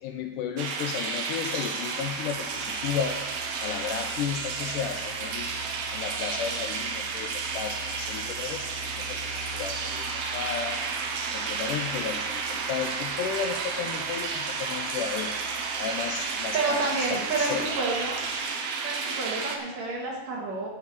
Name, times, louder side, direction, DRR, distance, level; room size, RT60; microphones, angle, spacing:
voice 1, 0.0-3.3 3.6-5.5 5.9-8.6 9.0-10.8 11.3-15.4 15.8-17.9, left 7 dB, 80° left, 5 dB, 2.0 m, -33 dB
sound 1, 0.6-19.6, right 5 dB, 85° right, 1.4 m, -32 dB
sound 2, 2.0-18.3, equal, 35° right, 1.7 m, -47 dB
voice 2, 16.5-18.2 18.8-20.7, right 3 dB, 55° right, -2 dB, 2.7 m, -29 dB
9.8 x 4.7 x 7.3 m, 1.1 s
omnidirectional pair, 4.2 m